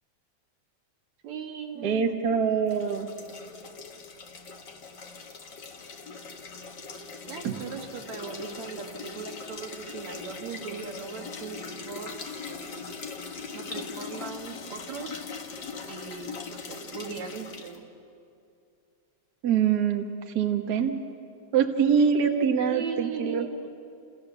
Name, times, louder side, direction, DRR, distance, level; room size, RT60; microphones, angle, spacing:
voice 1, 1.2-2.1 7.3-12.1 12.5-12.6 13.5-15.2 15.8-17.9 22.0-22.1 22.7-23.6, right 6 dB, 70° right, 2 dB, 3.2 m, -38 dB
voice 2, 1.8-3.1 7.4-7.6 19.4-20.1 20.3-21.1 21.5-23.5, right 7 dB, 45° right, 4 dB, 1.5 m, -24 dB
sound 1, 2.7-17.8, left 4 dB, 45° left, 1.9 m, -40 dB
30.0 x 28.5 x 7.1 m, 2.5 s
omnidirectional pair, 3.4 m